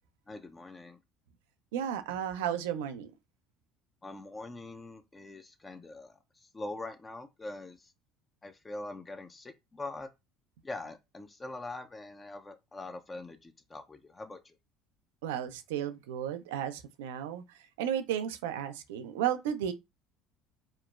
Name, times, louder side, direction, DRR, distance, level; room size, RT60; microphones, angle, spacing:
voice 1, 0.3-1.0 4.0-7.9 8.4-10.1 10.6-14.6, left 2 dB, 20° left, 0.4 m, -43 dB
voice 2, 1.7-3.1 15.2-17.4 17.8-19.7, right 10 dB, 80° right, 0.3 m, -33 dB
2.9 x 2.1 x 2.3 m
hypercardioid pair, 70°, 0 cm